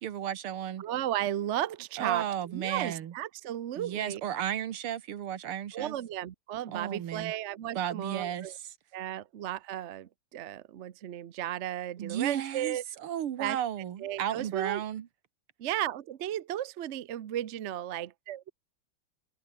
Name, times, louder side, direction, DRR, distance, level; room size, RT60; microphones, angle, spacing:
voice 1, 0.0-0.8 2.0-3.1 3.8-6.0 6.7-7.3 7.7-8.7 12.0-15.1, right 10 dB, 90° right, 2.2 m, -34 dB
voice 2, 0.8-2.2 2.5-4.2 5.7-8.5 8.9-12.8 13.4-13.6 14.0-14.8 15.6-18.5, right 12 dB, 70° right, 0.6 m, -34 dB
omnidirectional pair, 2.4 m